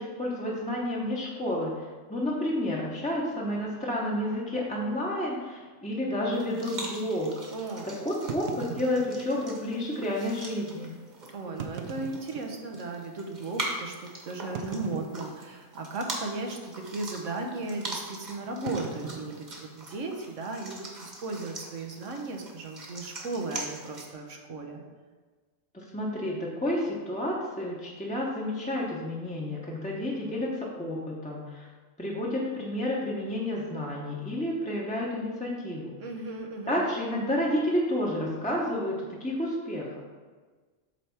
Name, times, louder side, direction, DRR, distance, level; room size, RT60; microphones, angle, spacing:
voice 1, 0.0-7.3 7.8-10.9 25.7-31.7 32.0-35.9 36.7-39.9, left 1 dB, 5° left, -4 dB, 0.8 m, -30 dB
sound 1, 3.5-3.7 4.5-4.6 4.9-5.0 5.6-5.7 8.3-9.5 10.3-10.4 11.4-12.9 13.4-13.5 14.5-15.6 15.9-16.3 16.5-16.9 18.7-20.3, right 6 dB, 60° right, 0.8 m, -40 dB
sound 2, 6.3-24.1, right 2 dB, 40° right, 1.3 m, -42 dB
voice 2, 7.5-8.0 11.3-24.8 36.0-36.9, right 3 dB, 90° right, 3 dB, 1.3 m, -36 dB
8.2 x 3.4 x 5.7 m, 1.4 s
omnidirectional pair, 1.2 m